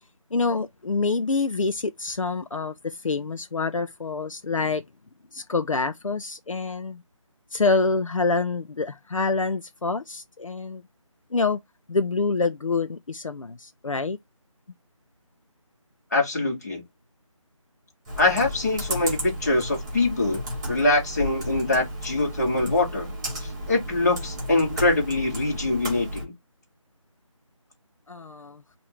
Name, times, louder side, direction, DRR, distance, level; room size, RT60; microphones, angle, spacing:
voice 1, 0.3-4.8 5.3-7.0 7.5-10.8 11.3-11.6 11.9-14.2 28.1-28.6, left 3 dB, 70° left, 0.6 m, -26 dB
voice 2, 16.1-16.8 18.2-20.4 20.7-23.1 23.4-26.3, left 2 dB, 30° left, 1.8 m, -24 dB
Computer keyboard, 18.0-26.2, equal, 10° right, 1.9 m, -33 dB
5.5 x 2.7 x 3.2 m
figure-of-eight pair, 170°, 17 cm